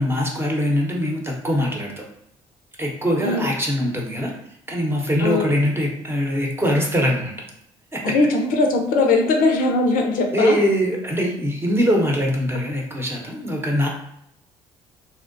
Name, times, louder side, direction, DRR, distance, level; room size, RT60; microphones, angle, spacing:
voice 1, 0.0-2.0 2.8-4.3 4.7-7.3 7.9-8.1 10.3-13.9, equal, 15° right, 0 dB, 0.8 m, -22 dB
voice 2, 3.2-3.5 5.2-5.6 8.0-10.6, left 3 dB, 60° left, 2 dB, 0.5 m, -20 dB
2.7 x 2.1 x 2.5 m, 0.74 s
hypercardioid pair, 55°, 15 cm